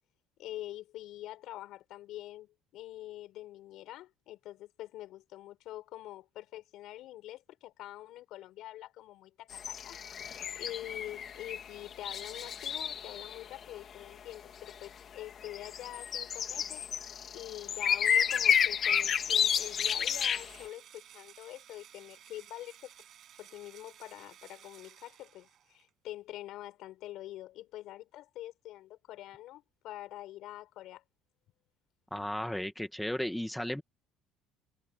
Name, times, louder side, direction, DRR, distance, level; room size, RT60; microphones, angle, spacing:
voice 1, 0.4-16.9 17.3-22.9 23.4-31.0, left 14 dB, 60° left, 4.8 m, -45 dB
sound 1, 9.5-13.4 13.6-13.7 14.7-14.8 15.2-20.7, left 8 dB, 35° left, 2.5 m, -31 dB
Engine / Drill, 19.3-25.9, right 10 dB, 45° right, 7.1 m, -56 dB
voice 2, 32.1-33.8, left 1 dB, 5° left, 1.4 m, -34 dB
cardioid pair, 155°, 0 cm